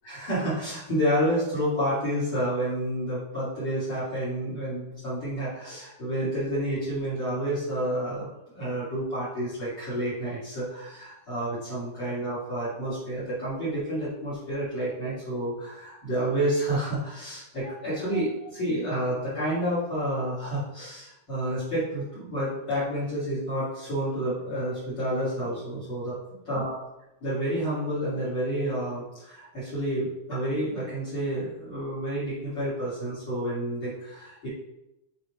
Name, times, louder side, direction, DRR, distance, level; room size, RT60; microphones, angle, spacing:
voice 1, 0.0-26.1 26.5-26.7 27.2-34.5, right 1 dB, 35° left, -10 dB, 3.3 m, -29 dB
7.7 x 3.8 x 4.9 m, 0.92 s
omnidirectional pair, 3.5 m